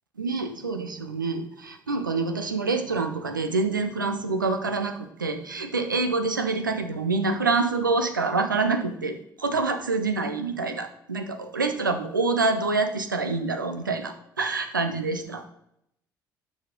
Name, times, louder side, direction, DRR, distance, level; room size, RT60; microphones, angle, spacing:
voice 1, 0.2-15.4, right 3 dB, 85° right, 7 dB, 0.5 m, -26 dB
6.5 x 5.5 x 5.8 m, 0.76 s
figure-of-eight pair, 45°, 10 cm